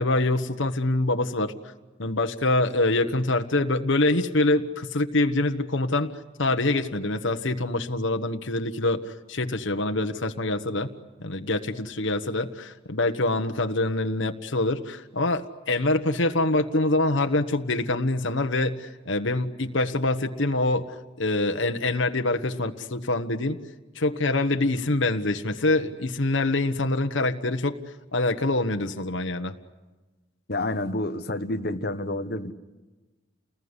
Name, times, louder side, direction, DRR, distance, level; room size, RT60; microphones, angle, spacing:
voice 1, 0.0-1.5 2.0-6.1 6.4-10.9 11.2-23.6 23.9-27.8 28.1-29.5, left 2 dB, 80° left, 6 dB, 1.3 m, -25 dB
voice 2, 30.5-32.5, left 1 dB, 55° left, 8 dB, 1.2 m, -29 dB
29.5 x 20.5 x 9.8 m, 1.2 s
head